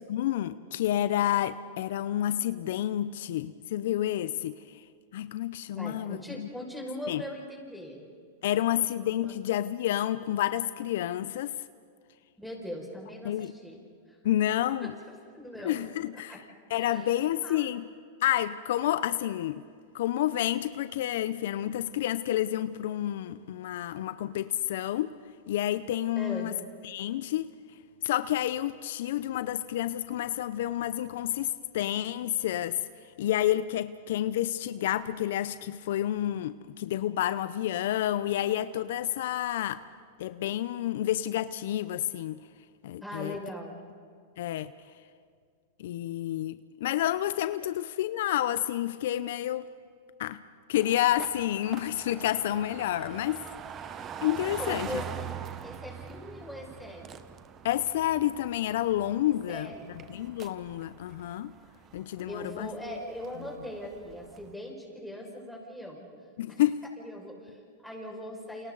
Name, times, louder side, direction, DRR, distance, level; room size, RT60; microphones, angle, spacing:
voice 1, 0.1-4.8 5.1-6.5 7.1-7.2 8.4-11.5 13.2-13.5 14.2-14.9 15.6-16.4 16.7-17.8 18.2-19.6 19.9-25.2 25.5-26.5 26.8-27.5 28.0-32.8 33.2-39.8 40.2-42.4 42.8-43.3 44.4-44.7 45.8-49.6 50.2-50.4 50.7-53.4 54.2-54.9 57.6-59.7 60.1-61.5 61.9-62.7 66.4-66.8, left 12 dB, 70° left, 0.6 m, -29 dB
voice 2, 5.7-8.1 9.2-9.3 12.4-14.2 14.8-14.9 15.3-15.8 16.3-16.4 16.8-17.1 17.4-17.7 26.1-26.5 43.0-43.8 54.6-55.1 55.6-57.2 59.2-59.9 62.3-66.1 66.5-66.6 67.0-68.7, equal, ahead, 5.8 m, -40 dB
sound 1, 50.7-64.5, right 8 dB, 30° right, 1.2 m, -44 dB
29.0 x 29.0 x 4.0 m
hypercardioid pair, 120°, 0 cm